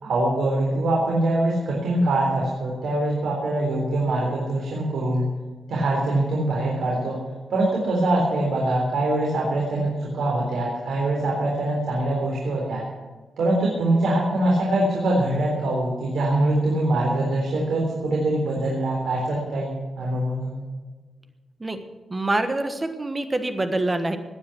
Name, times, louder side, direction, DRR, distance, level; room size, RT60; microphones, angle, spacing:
voice 1, 0.0-5.3 5.7-7.2 7.5-12.8 13.4-20.6, right 1 dB, 90° right, -3 dB, 3.8 m, -23 dB
voice 2, 22.1-24.2, right 2 dB, 20° right, 8 dB, 1.4 m, -25 dB
18.0 x 9.7 x 6.2 m, 1.4 s
wide cardioid pair, 140°, 0 cm